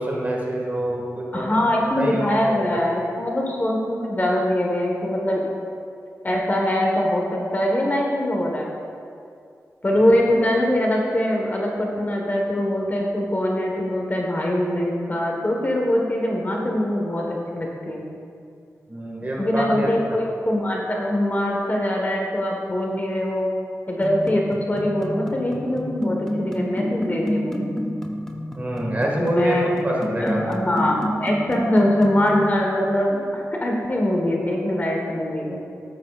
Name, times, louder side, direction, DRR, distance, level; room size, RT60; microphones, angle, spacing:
voice 1, 0.0-1.5 1.9-2.6 2.9-3.0 10.0-10.1 18.9-20.1 28.6-29.6 29.8-30.6, right 1 dB, 30° right, -2 dB, 1.8 m, -26 dB
voice 2, 1.3-5.4 6.2-8.7 9.8-18.1 19.4-23.5 23.9-27.8 29.2-29.7 30.2-35.6, left 1 dB, 30° left, -1 dB, 1.3 m, -23 dB
sound 1, 24.0-32.5, equal, 10° left, 0.7 m, -29 dB
13.5 x 9.3 x 2.5 m, 2.4 s
wide cardioid pair, 110°, 6 cm